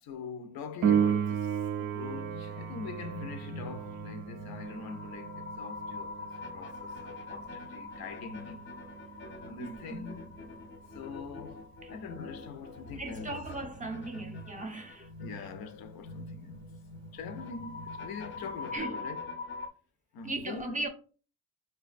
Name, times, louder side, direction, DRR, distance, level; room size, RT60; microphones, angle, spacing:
voice 1, 0.0-8.8 9.5-10.3 10.9-13.4 15.2-16.7 17.1-19.3 20.1-20.8, left 5 dB, 80° left, 0.6 m, -43 dB
Piano, 0.8-11.2 18.8-18.9, right 8 dB, 75° right, 0.5 m, -35 dB
sound 1, 2.0-19.7, left 3 dB, 35° left, 0.4 m, -44 dB
voice 2, 9.6-10.1 11.8-11.9 13.0-15.1 18.7-19.1 20.2-20.9, right 2 dB, 20° right, 0.5 m, -38 dB
4.5 x 2.2 x 2.4 m
cardioid pair, 125°, 36 cm